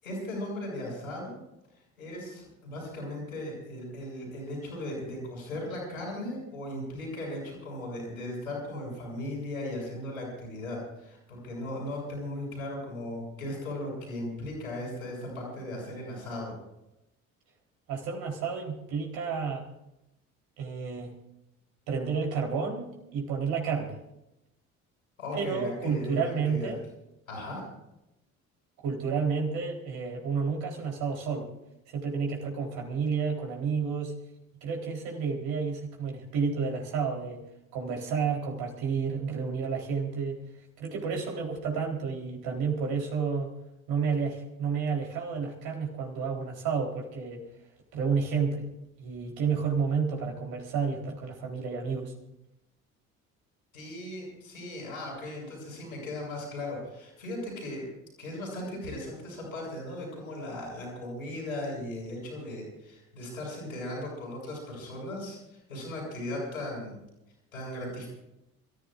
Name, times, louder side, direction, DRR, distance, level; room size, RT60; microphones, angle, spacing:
voice 1, 0.0-1.4 2.0-16.5 25.2-26.7 27.3-27.6 53.7-57.8 58.2-66.9 67.5-68.1, left 1 dB, 85° left, -2 dB, 7.4 m, -37 dB
voice 2, 17.9-19.7 20.6-21.1 21.9-24.0 25.3-26.8 28.8-31.5 31.9-34.1 34.6-37.4 37.7-40.4 40.8-43.5 43.9-47.4 47.9-48.7 49.0-52.1, right 5 dB, 60° right, 0 dB, 4.1 m, -30 dB
28.5 x 15.0 x 2.6 m, 0.88 s
figure-of-eight pair, 55°, 41 cm